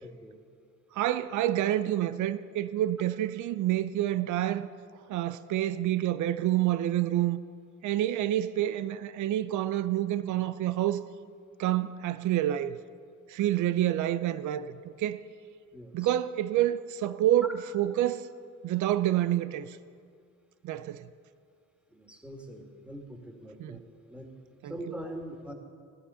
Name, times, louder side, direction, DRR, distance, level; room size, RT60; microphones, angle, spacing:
voice 1, 0.0-0.4 15.7-16.1 21.9-23.8 24.1-24.3 24.7-25.5, right 1 dB, 5° right, 2.1 m, -42 dB
voice 2, 0.9-4.7 5.1-7.4 7.8-11.0 11.6-12.8 13.3-15.2 15.9-18.3 18.6-19.8 20.6-21.0 23.6-23.8 24.6-24.9, right 13 dB, 75° right, 0.6 m, -28 dB
17.0 x 11.0 x 5.6 m
cardioid pair, 90°, 30 cm